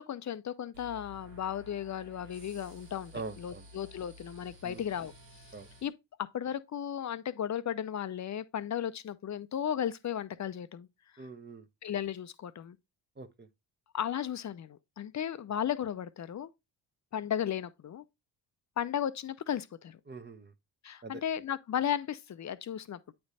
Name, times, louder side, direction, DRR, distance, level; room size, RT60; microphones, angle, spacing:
voice 1, 0.0-5.1 5.8-5.9 6.3-10.9 11.8-12.8 13.9-16.5 17.1-18.0 18.8-20.0 20.8-23.1, left 9 dB, 35° left, 0.6 m, -35 dB
sound 1, 0.7-5.9, equal, 85° right, 2.2 m, -53 dB
voice 2, 3.1-3.7 4.6-4.8 5.5-5.7 11.2-11.7 13.2-13.5 20.1-20.5 21.0-21.1, right 4 dB, 20° right, 1.0 m, -43 dB
8.7 x 3.2 x 4.1 m
hypercardioid pair, 45°, 49 cm